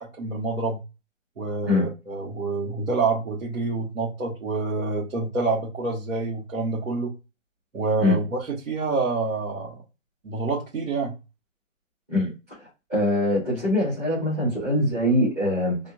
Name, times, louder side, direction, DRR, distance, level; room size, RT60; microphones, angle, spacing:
voice 1, 0.1-0.8 1.4-7.1 7.7-9.8 10.2-11.1, right 3 dB, 80° right, -5 dB, 1.5 m, -27 dB
voice 2, 12.1-15.8, left 1 dB, 10° right, -11 dB, 1.0 m, -23 dB
2.8 x 2.3 x 2.8 m, 0.28 s
hypercardioid pair, 170°, 40 cm